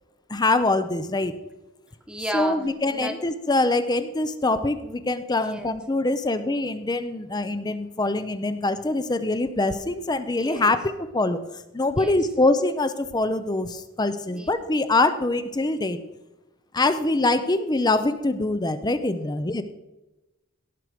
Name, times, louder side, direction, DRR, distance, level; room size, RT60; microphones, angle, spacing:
voice 1, 0.3-1.3 2.3-11.4 11.7-16.0 16.7-19.6, left 2 dB, 20° left, 11 dB, 0.6 m, -24 dB
voice 2, 2.1-2.6 2.9-3.2 5.4-5.7 10.3-10.7 12.0-12.2 14.3-14.6, right 1 dB, 5° right, 5 dB, 1.1 m, -33 dB
17.0 x 6.2 x 5.1 m, 0.99 s
head